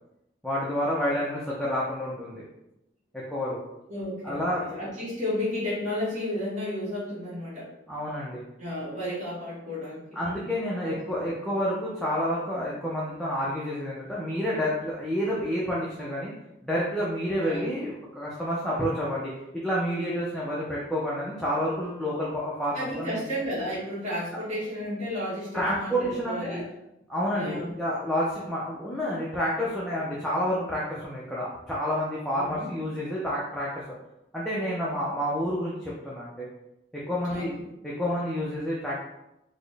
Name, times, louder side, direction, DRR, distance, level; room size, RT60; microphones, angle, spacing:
voice 1, 0.4-2.4 3.1-3.6 4.2-4.6 7.9-8.4 10.2-16.3 16.6-23.2 25.5-26.6 27.1-33.7 34.3-36.5 36.9-39.0, equal, ahead, -7 dB, 0.4 m, -29 dB
voice 2, 3.9-7.7 8.6-10.2 10.8-11.2 17.4-17.6 22.7-26.7 27.3-27.7 32.3-32.7 37.2-37.7, left 1 dB, 35° right, -9 dB, 1.4 m, -33 dB
4.0 x 2.1 x 3.3 m, 0.88 s
head